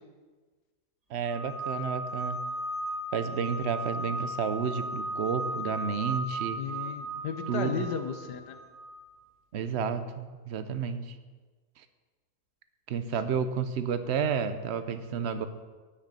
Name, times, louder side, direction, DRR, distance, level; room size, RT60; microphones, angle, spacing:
voice 1, 1.1-2.4 3.1-6.6 7.5-7.9 9.5-11.2 12.9-15.5, right 6 dB, 55° right, 10 dB, 0.8 m, -31 dB
sound 1, 1.2-9.0, right 1 dB, 75° right, 3.5 m, -36 dB
voice 2, 6.5-8.6, left 7 dB, 90° left, 7 dB, 1.4 m, -34 dB
9.8 x 6.4 x 8.5 m, 1.4 s
omnidirectional pair, 1.7 m